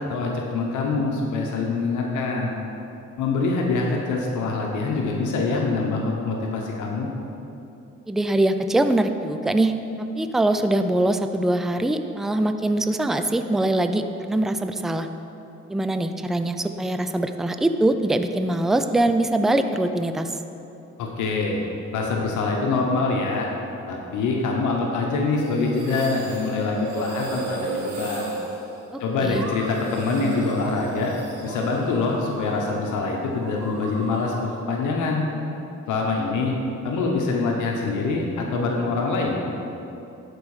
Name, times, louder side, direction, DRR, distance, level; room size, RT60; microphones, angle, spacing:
voice 1, 0.0-2.5 3.2-7.1 21.0-21.6 21.9-23.5 23.9-28.4 29.0-31.1 31.4-35.2 35.9-36.5 36.8-39.4, left 3 dB, 85° left, 0 dB, 1.0 m, -25 dB
voice 2, 8.1-9.7 10.0-15.1 15.7-20.4 28.9-29.5, right 1 dB, ahead, 8 dB, 0.4 m, -23 dB
sound 1, 25.4-32.8 33.0-34.6, right 2 dB, 80° right, 1.6 m, -35 dB
11.5 x 4.7 x 4.9 m, 2.8 s
cardioid pair, 90°, 30 cm